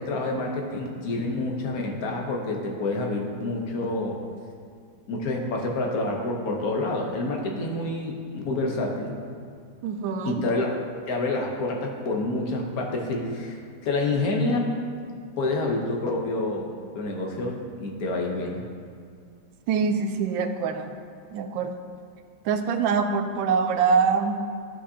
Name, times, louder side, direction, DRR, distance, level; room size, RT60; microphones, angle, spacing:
voice 1, 0.0-4.2 5.1-9.2 10.2-10.7 11.1-14.8 15.4-18.6, left 2 dB, 55° left, 0 dB, 1.3 m, -28 dB
voice 2, 9.8-10.4 19.7-21.0 21.3-21.8 22.4-24.4, right 5 dB, 90° right, 8 dB, 1.3 m, -24 dB
12.0 x 6.1 x 2.8 m, 2.3 s
omnidirectional pair, 2.0 m